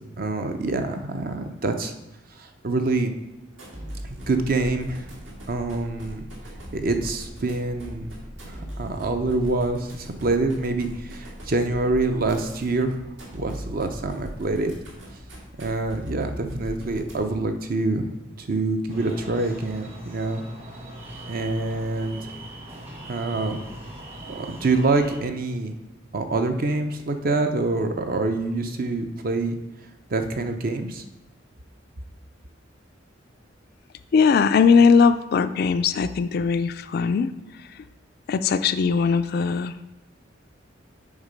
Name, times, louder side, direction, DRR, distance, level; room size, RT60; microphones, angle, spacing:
voice 1, 0.2-1.9 2.4-3.1 4.3-5.1 5.5-6.3 6.7-8.1 8.4-13.0 13.3-14.7 15.6-18.1 18.4-20.4 21.3-22.3 23.1-23.6 24.3-25.7 26.1-29.6 30.1-31.0, right 2 dB, 50° right, 7 dB, 0.6 m, -26 dB
sound 1, 3.5-17.5, equal, 70° right, 1.9 m, -39 dB
sound 2, 18.9-25.2, right 1 dB, 35° right, 1.3 m, -40 dB
voice 2, 34.1-37.3 38.3-39.7, left 5 dB, 55° left, 11 dB, 0.3 m, -19 dB
7.2 x 3.6 x 5.2 m, 0.93 s
head